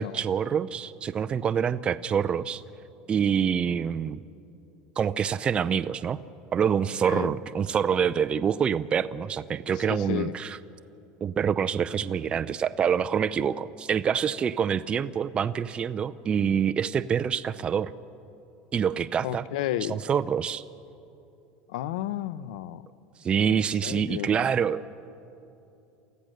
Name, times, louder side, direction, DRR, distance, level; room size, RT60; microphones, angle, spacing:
voice 1, 0.0-2.6 3.1-4.2 5.0-6.2 6.5-10.6 11.2-17.9 18.7-19.4 19.9-20.6 23.2-24.9, right 7 dB, 25° right, 13 dB, 0.5 m, -26 dB
voice 2, 9.7-10.4 19.2-20.0 21.7-22.9 23.5-24.4, left 12 dB, 85° left, 17 dB, 0.7 m, -32 dB
28.5 x 15.0 x 6.6 m, 2.7 s
supercardioid pair, 125°, 4 cm